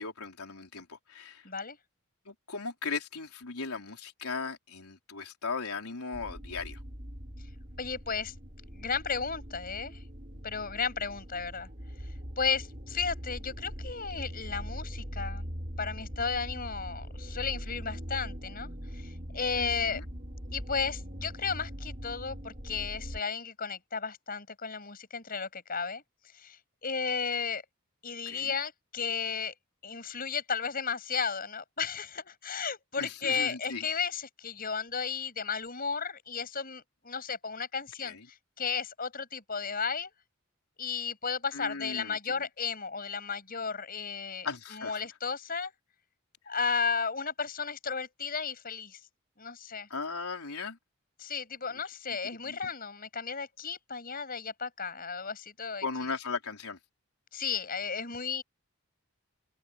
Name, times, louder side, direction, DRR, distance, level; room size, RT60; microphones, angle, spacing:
voice 1, 0.0-1.5 2.3-6.8 19.6-20.1 28.3-28.5 33.0-33.8 38.0-38.3 41.5-42.4 44.4-45.0 49.9-50.8 52.2-52.6 55.8-56.8, left 4 dB, 90° left, 4.1 m, -37 dB
voice 2, 1.4-1.8 7.8-8.3 8.7-10.0 10.4-11.7 12.4-15.5 15.8-20.0 20.5-26.0 26.3-27.6 28.0-29.5 29.8-38.2 38.6-40.1 40.8-45.7 46.5-49.0 49.4-49.9 51.2-56.1 57.3-58.4, left 5 dB, 40° left, 6.3 m, -34 dB
sound 1, 6.1-23.2, equal, 35° right, 8.0 m, -41 dB
head